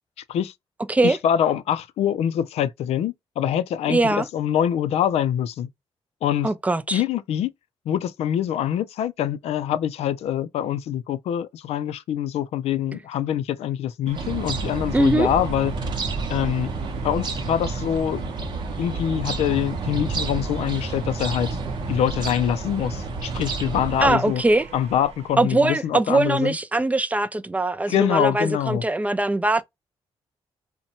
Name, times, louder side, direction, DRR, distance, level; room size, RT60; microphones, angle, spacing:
voice 1, 1.0-5.7 6.2-6.5 6.9-7.5 7.9-15.7 16.3-16.7 17.0-18.2 18.8-21.6 21.9-24.4 24.7-26.6 27.9-28.8, left 10 dB, 85° left, 0.4 m, -24 dB
voice 2, 3.9-4.3 6.4-7.0 14.9-15.3 24.0-24.7 25.4-29.6, right 2 dB, 15° right, 0.3 m, -21 dB
sound 1, 14.1-24.1, right 4 dB, 45° right, 0.7 m, -30 dB
sound 2, 14.1-25.7, right 5 dB, 90° right, 0.6 m, -42 dB
2.7 x 2.1 x 2.7 m
cardioid pair, 85°, 10 cm